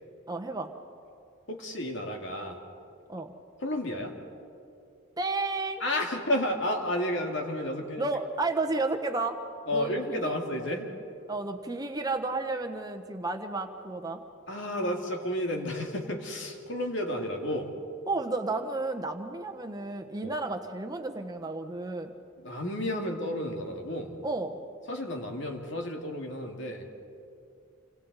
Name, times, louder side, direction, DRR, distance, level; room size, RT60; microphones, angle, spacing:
voice 1, 0.3-0.7 3.1-3.3 5.2-5.8 8.0-9.4 9.7-10.3 11.3-14.2 18.1-22.1 24.2-24.6, right 3 dB, 20° right, 5 dB, 1.2 m, -32 dB
voice 2, 1.5-2.6 3.6-4.1 5.8-8.1 9.7-10.9 14.5-17.7 20.2-20.4 22.4-24.1 24.9-26.9, left 1 dB, 60° left, 2 dB, 2.4 m, -31 dB
28.5 x 26.0 x 4.2 m, 2.6 s
head